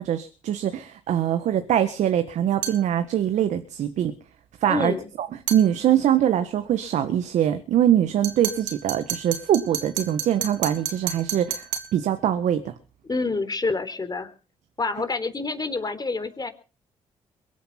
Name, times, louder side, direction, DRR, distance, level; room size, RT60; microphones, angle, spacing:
voice 1, 0.0-4.1 4.6-12.7, right 10 dB, 75° right, 9 dB, 1.6 m, -23 dB
sound 1, 2.6-2.9 5.5-5.7 8.2-12.0, right 10 dB, 90° right, 3.3 m, -31 dB
voice 2, 4.7-5.1 13.1-14.3 14.8-16.5, left 3 dB, 35° left, 9 dB, 4.1 m, -27 dB
23.0 x 9.4 x 6.0 m, 0.36 s
supercardioid pair, 50°, 12 cm